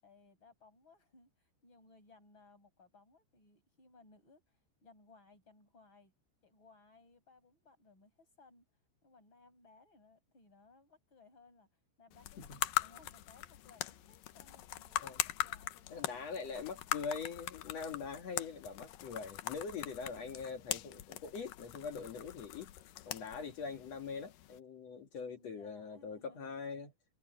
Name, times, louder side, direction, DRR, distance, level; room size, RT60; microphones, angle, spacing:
voice 1, 0.0-4.4 4.8-6.1 6.4-8.6 9.0-11.7 12.0-12.4 12.8-16.9 25.3-26.7, left 3 dB, 25° left, 7.9 m, -63 dB
sound 1, 12.1-24.6, left 14 dB, 85° left, 1.9 m, -41 dB
voice 2, 15.9-22.7 23.0-26.9, left 5 dB, 55° left, 2.0 m, -43 dB
omnidirectional pair, 5.2 m